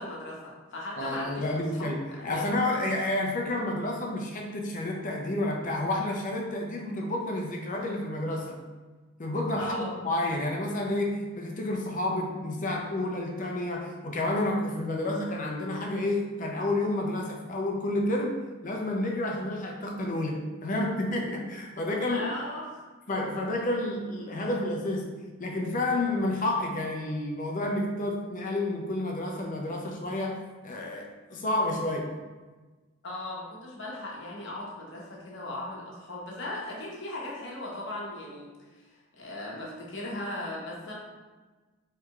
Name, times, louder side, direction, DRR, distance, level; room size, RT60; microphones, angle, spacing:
voice 1, 0.0-1.5 1.8-2.4 9.6-10.0 22.1-22.7 33.0-40.9, left 1 dB, 55° left, -4 dB, 0.9 m, -38 dB
voice 2, 1.0-2.0 2.2-8.6 9.2-18.4 18.6-22.3 23.1-32.1, left 1 dB, 35° left, 1 dB, 0.5 m, -30 dB
4.6 x 3.3 x 2.4 m, 1.3 s
head